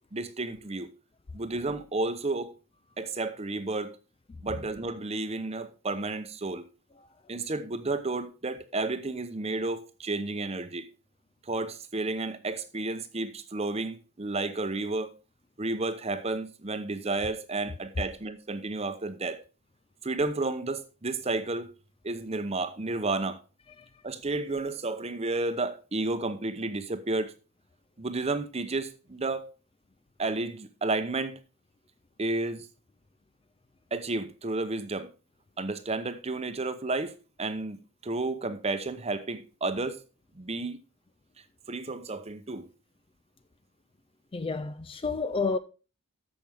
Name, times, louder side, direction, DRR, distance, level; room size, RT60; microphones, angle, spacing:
voice 1, 0.1-0.9 1.3-2.5 3.0-4.0 4.4-6.6 7.3-10.9 11.5-15.2 15.6-19.4 20.0-21.7 22.0-23.4 24.0-27.3 28.0-29.5 30.2-31.4 32.2-32.7 33.9-35.1 35.6-40.0 40.4-40.8 41.7-42.7, right 2 dB, 30° right, 0.7 m, -32 dB
voice 2, 44.3-45.6, left 4 dB, 25° left, 0.3 m, -30 dB
13.5 x 6.0 x 3.4 m
head